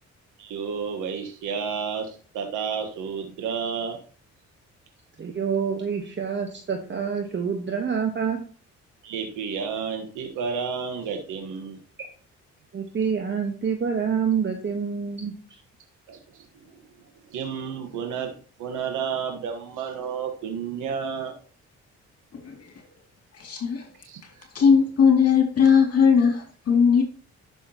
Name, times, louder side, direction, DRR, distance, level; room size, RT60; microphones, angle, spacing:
voice 1, 0.4-4.0 9.0-11.8 16.1-16.8 17.3-18.3 18.6-21.3 24.0-24.2, right 6 dB, 85° right, 1.4 m, -31 dB
voice 2, 5.2-8.4 12.7-15.3, right 6 dB, 40° right, 1.3 m, -27 dB
voice 3, 22.3-22.8 23.3-23.9 24.2-24.3 24.5-27.0, left 6 dB, 55° left, 2.6 m, -19 dB
12.0 x 6.2 x 2.9 m
cardioid pair, 90°, 30 cm